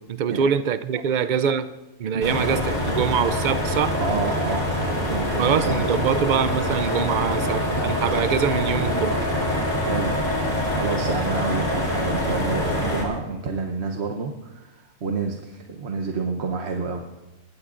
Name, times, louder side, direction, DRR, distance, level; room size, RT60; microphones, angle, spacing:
voice 1, 0.0-1.7 2.0-3.9 5.4-9.2, right 7 dB, 85° right, 12 dB, 0.4 m, -24 dB
sound 1, 2.2-13.0, left 1 dB, 35° left, 3.7 m, -25 dB
voice 2, 4.0-4.7 5.1-6.1 9.8-10.2 10.7-17.1, right 4 dB, 55° right, 3 dB, 1.1 m, -29 dB
20.5 x 15.5 x 2.5 m, 1.1 s
omnidirectional pair, 1.4 m